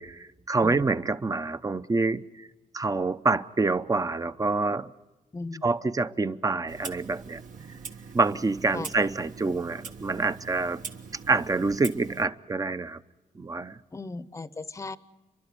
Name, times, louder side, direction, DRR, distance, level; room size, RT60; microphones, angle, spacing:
voice 1, 0.0-2.5 2.7-4.9 5.6-7.4 8.1-10.8 11.3-13.0 13.3-13.8, right 3 dB, 25° right, 0.7 m, -27 dB
Clock, 6.7-12.3, right 5 dB, 65° right, 1.5 m, -42 dB
voice 2, 13.9-15.0, left 3 dB, 20° left, 0.8 m, -36 dB
29.5 x 12.0 x 9.7 m
cardioid pair, 85°, 14 cm